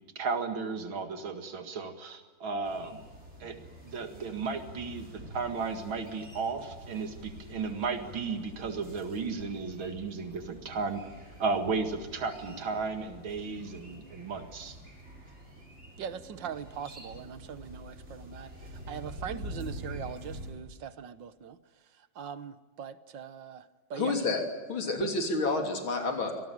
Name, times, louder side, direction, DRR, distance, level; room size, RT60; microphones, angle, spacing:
voice 1, 0.2-3.0 3.4-3.6 3.8-11.1 11.4-14.8, right 4 dB, 85° right, 7 dB, 2.7 m, -34 dB
sound 1, 2.6-20.5, equal, 35° right, 7.1 m, -47 dB
voice 2, 16.0-24.2 25.0-25.1, right 8 dB, 70° right, 13 dB, 1.7 m, -41 dB
voice 3, 23.9-24.4 24.7-26.4, left 3 dB, 90° left, 4 dB, 3.9 m, -29 dB
25.0 x 18.5 x 9.4 m, 1.4 s
omnidirectional pair, 2.1 m